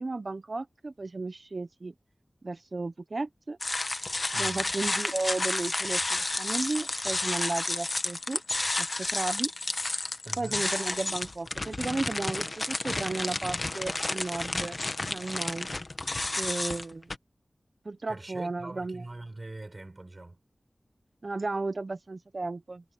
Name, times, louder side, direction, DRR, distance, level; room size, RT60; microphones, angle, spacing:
voice 1, 0.0-1.9 2.4-3.6 4.4-8.4 8.8-9.5 10.4-14.8 15.1-15.7 16.4-17.1 17.8-19.0 21.2-22.9, right 3 dB, 55° right, 0.9 m, -34 dB
sound 1, 3.6-17.2, left 2 dB, 45° left, 1.3 m, -31 dB
voice 2, 4.3-4.6 10.2-10.7 18.1-20.4, right 2 dB, 40° right, 6.3 m, -43 dB
sound 2, 5.9-11.1, left 4 dB, 90° left, 5.8 m, -48 dB
wide cardioid pair, 65°, 0 cm